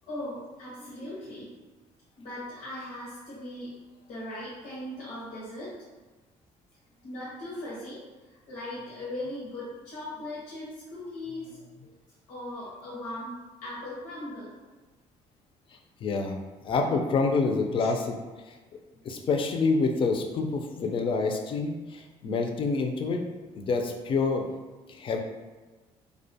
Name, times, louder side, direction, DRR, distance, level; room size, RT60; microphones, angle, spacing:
voice 1, 0.1-1.5 2.2-3.7 4.1-5.8 7.0-8.0 8.5-11.9 12.3-14.6 17.8-17.9, left 1 dB, 85° left, -7 dB, 0.7 m, -39 dB
voice 2, 16.0-16.4 16.6-18.1 19.0-23.2 23.6-24.5 25.0-25.2, left 4 dB, 40° left, 3 dB, 0.4 m, -27 dB
2.4 x 2.1 x 2.7 m, 1.3 s
cardioid pair, 100°, 13 cm